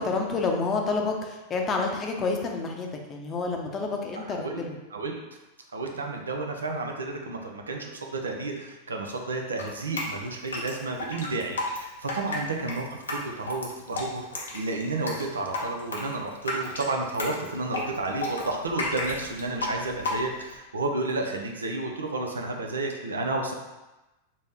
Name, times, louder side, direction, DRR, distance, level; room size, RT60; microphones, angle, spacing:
voice 1, 0.0-4.8, left 4 dB, 30° left, 2 dB, 0.6 m, -29 dB
voice 2, 4.1-4.6 4.9-5.2 5.7-23.5, right 2 dB, 90° right, 2 dB, 0.5 m, -31 dB
Drip, 9.6-20.6, left 2 dB, 85° left, 0.6 m, -33 dB
4.0 x 2.0 x 3.4 m, 1.0 s
hypercardioid pair, 100°, 0 cm